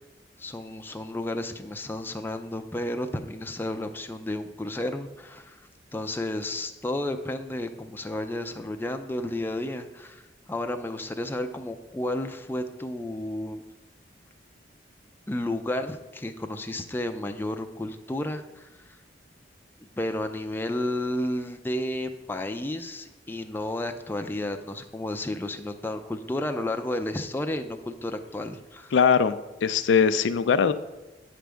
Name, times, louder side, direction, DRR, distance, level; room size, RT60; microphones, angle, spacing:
voice 1, 0.4-5.6 5.9-10.2 10.5-13.6 15.3-19.0 20.0-28.9, left 1 dB, 10° left, 6 dB, 0.4 m, -32 dB
voice 2, 28.9-30.7, left 6 dB, 85° left, 12 dB, 0.4 m, -21 dB
9.0 x 3.4 x 6.2 m, 1.1 s
head